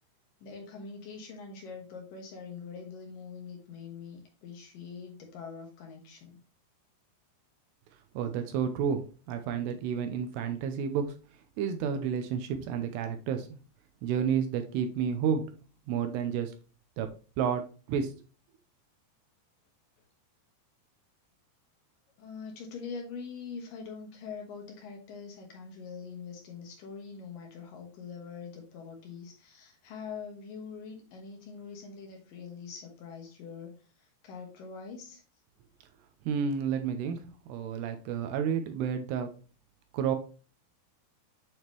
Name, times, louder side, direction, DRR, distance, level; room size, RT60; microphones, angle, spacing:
voice 1, 0.4-6.4 22.2-33.7 34.2-35.2, left 5 dB, 70° left, 1 dB, 2.3 m, -43 dB
voice 2, 8.1-11.1 11.6-13.6 14.0-15.6 15.9-16.5 17.0-17.1 17.4-18.1 36.3-39.3 39.9-40.2, right 7 dB, 80° right, 7 dB, 2.5 m, -31 dB
8.9 x 3.6 x 3.0 m, 0.36 s
omnidirectional pair, 5.3 m